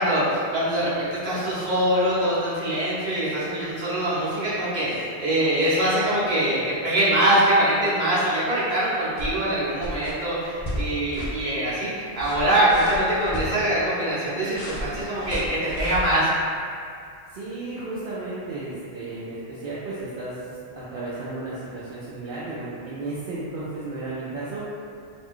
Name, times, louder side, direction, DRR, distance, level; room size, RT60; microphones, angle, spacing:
voice 1, 0.0-16.3, right 1 dB, 45° right, -10 dB, 1.0 m, -23 dB
sound 1, 9.2-9.5 9.8-10.1 10.6-10.9 11.1-11.4 12.1-13.5 14.5-16.0, left 1 dB, 55° left, 0.5 m, -33 dB
voice 2, 17.3-24.6, right 2 dB, 60° right, -9 dB, 0.6 m, -34 dB
2.5 x 2.2 x 3.5 m, 2.4 s
omnidirectional pair, 1.1 m